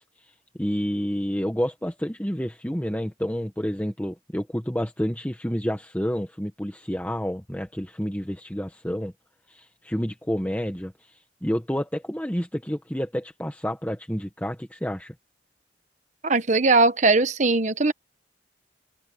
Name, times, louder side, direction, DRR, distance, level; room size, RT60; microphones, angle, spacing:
voice 1, 0.0-9.1 9.5-15.1, equal, 10° left, 1.5 m, -29 dB
voice 2, 16.2-17.9, right 3 dB, 40° right, 1.1 m, -20 dB
head